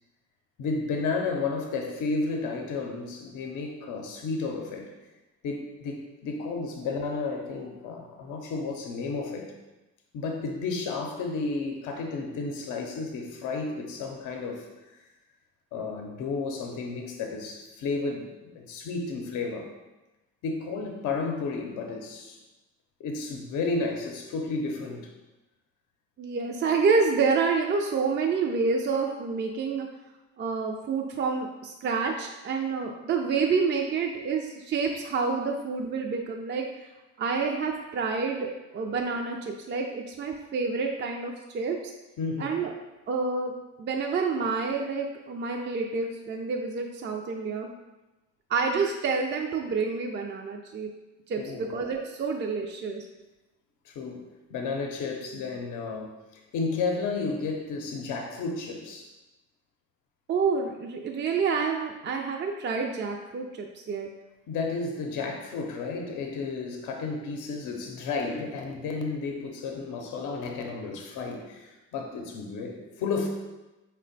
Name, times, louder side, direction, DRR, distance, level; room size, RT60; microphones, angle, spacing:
voice 1, 0.6-4.9 5.4-9.5 10.1-15.0 15.7-19.7 20.4-22.4 23.0-25.1 42.2-42.6 51.3-51.7 53.9-56.2 56.5-59.1 64.5-73.3, left 4 dB, 85° left, 2 dB, 0.6 m, -32 dB
voice 2, 26.2-29.9 30.4-36.9 37.2-41.8 42.4-42.7 43.1-43.5 43.8-47.7 48.5-50.9 51.3-53.1 60.3-64.1, right 4 dB, 40° right, 1 dB, 0.4 m, -28 dB
4.2 x 2.1 x 3.9 m, 1.0 s
cardioid pair, 90°, 30 cm